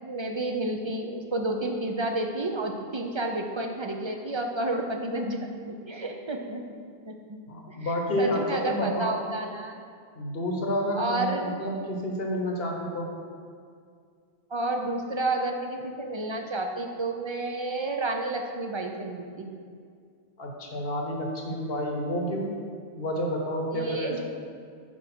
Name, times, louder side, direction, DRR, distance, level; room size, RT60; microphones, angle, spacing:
voice 1, 0.0-6.6 7.1-7.4 7.7-9.7 11.0-11.5 14.5-19.5 23.7-24.2, right 2 dB, 35° right, 3 dB, 0.5 m, -31 dB
voice 2, 7.5-9.2 10.1-13.1 20.4-22.5 22.9-24.2, equal, 65° left, 0 dB, 1.3 m, -29 dB
6.3 x 4.9 x 6.0 m, 2.2 s
omnidirectional pair, 1.1 m